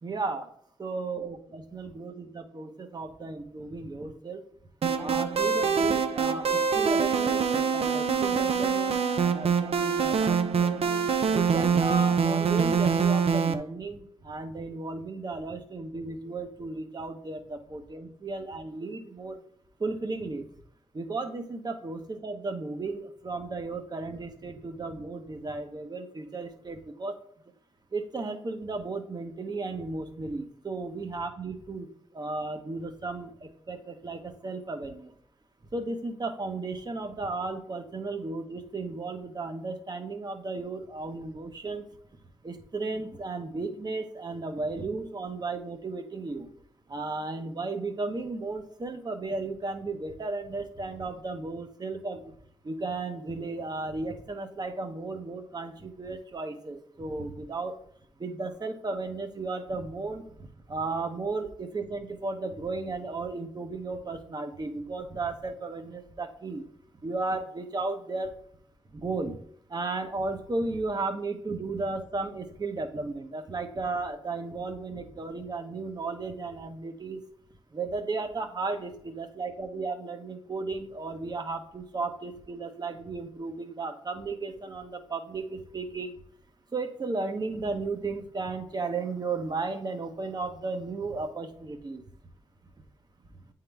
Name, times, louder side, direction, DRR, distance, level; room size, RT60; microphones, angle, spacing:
voice 1, 0.0-0.5 0.8-4.4 5.0-10.8 11.3-19.4 19.8-20.5 20.9-27.2 27.9-31.9 32.1-35.1 35.7-41.8 42.4-46.5 46.9-52.3 52.6-57.7 58.2-60.2 60.7-66.7 67.0-68.3 68.9-69.4 69.7-77.2 77.7-86.2 86.7-92.0, right 3 dB, 40° right, 5 dB, 0.9 m, -34 dB
sound 1, 4.8-13.5, right 6 dB, 70° right, 0.6 m, -25 dB
8.9 x 3.8 x 3.4 m, 0.66 s
cardioid pair, 75°, 11 cm